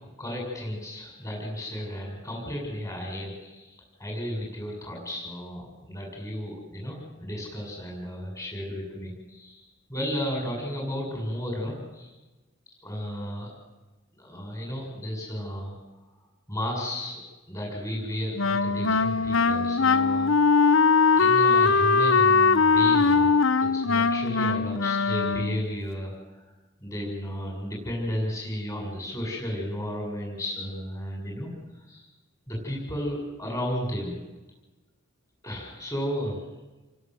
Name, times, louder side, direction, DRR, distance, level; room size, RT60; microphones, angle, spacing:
voice 1, 0.2-12.1 12.8-13.5 14.2-15.8 16.5-17.2 17.5-20.3 21.2-26.4 26.8-32.1 32.5-34.2 35.4-36.4, equal, 15° left, -1 dB, 7.1 m, -33 dB
Wind instrument woodwind instrument, 18.4-25.7, left 4 dB, 75° left, 1.0 m, -21 dB
29.0 x 23.0 x 7.9 m, 1.1 s
head